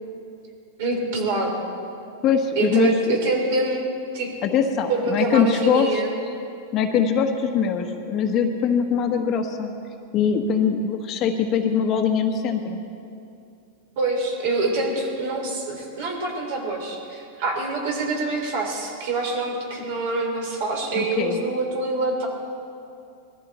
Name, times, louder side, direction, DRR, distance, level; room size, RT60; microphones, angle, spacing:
voice 1, 0.8-1.6 2.5-3.9 4.1-4.3 4.9-6.1 14.0-22.3, right 3 dB, 60° right, 1 dB, 4.0 m, -25 dB
voice 2, 2.2-3.2 4.4-5.9 6.7-9.7 10.1-12.8 20.9-21.4, left 6 dB, 35° left, 4 dB, 1.3 m, -22 dB
20.5 x 14.0 x 4.4 m, 2.5 s
supercardioid pair, 140°, 0 cm